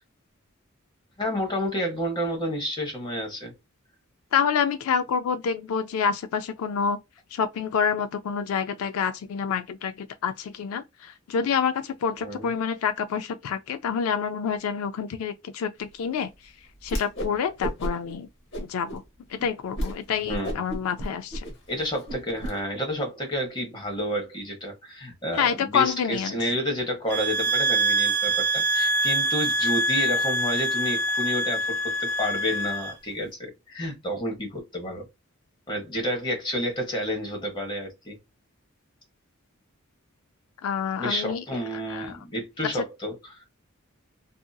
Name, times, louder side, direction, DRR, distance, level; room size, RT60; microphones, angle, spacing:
voice 1, 1.2-3.5 12.2-12.5 20.2-20.6 21.7-35.1 35.7-38.2 41.0-43.4, equal, 20° left, 1.0 m, -30 dB
voice 2, 4.3-7.0 7.3-16.3 16.8-18.3 18.6-19.0 19.3-21.4 25.3-26.4 40.6-41.4 41.7-42.2, left 7 dB, 80° left, 0.3 m, -27 dB
Whoosh swoosh swish, 16.8-17.3 17.6-18.1 18.5-19.0 19.4-19.5 19.8-20.0 20.3-22.5, equal, 60° left, 0.8 m, -31 dB
sound 1, 27.1-32.9, right 1 dB, 50° right, 0.4 m, -25 dB
2.7 x 2.5 x 2.2 m
head